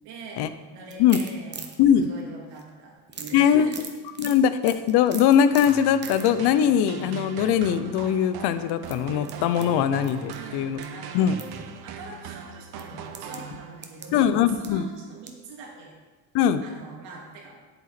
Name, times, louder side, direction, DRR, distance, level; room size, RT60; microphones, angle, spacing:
voice 1, 0.0-3.9 10.3-11.5 11.8-14.3 14.6-16.0 16.6-17.6, right 3 dB, 75° right, -2 dB, 2.8 m, -43 dB
sound 1, 0.9-2.7 3.1-6.4 6.8-7.1 7.9-8.1 8.8-10.9 11.1-11.5 11.9-12.0 12.8-15.5 15.9-16.0 16.4-16.5, right 5 dB, 25° right, 1.0 m, -41 dB
voice 2, 1.8-2.1 3.3-3.7 4.2-10.8 11.1-11.3 14.1-14.9 16.3-16.6, left 9 dB, 65° left, 12 dB, 0.7 m, -21 dB
sound 2, 5.7-14.0, right 7 dB, 60° right, 1.0 m, -40 dB
8.6 x 8.1 x 4.3 m, 1.3 s
cardioid pair, 125°, 42 cm